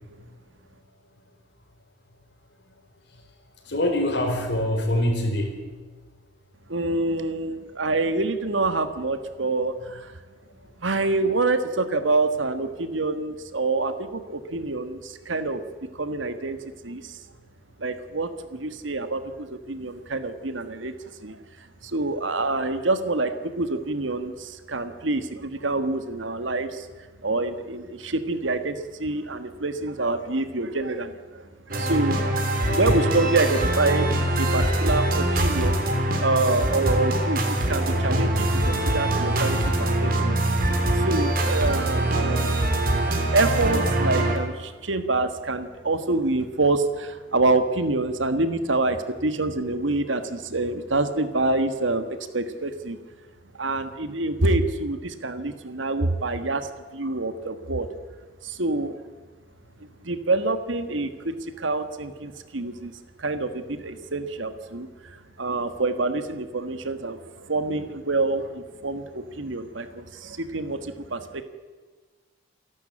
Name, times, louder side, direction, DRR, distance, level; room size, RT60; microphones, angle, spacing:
voice 1, 3.7-5.6 32.6-33.0, left 1 dB, 60° left, 3 dB, 4.8 m, -24 dB
voice 2, 6.7-10.1 10.8-15.6 15.9-16.6 16.8-17.2 17.8-20.9 21.2-26.9 27.2-32.4 32.7-35.8 36.2-40.4 40.9-42.6 43.1-52.0 52.3-53.0 53.6-57.9 58.4-59.0 60.0-62.9 63.2-71.4, right 2 dB, 85° right, 9 dB, 1.5 m, -26 dB
sound 1, 31.7-44.4, right 1 dB, 50° right, 3.6 m, -23 dB
27.5 x 12.0 x 8.6 m, 1.4 s
head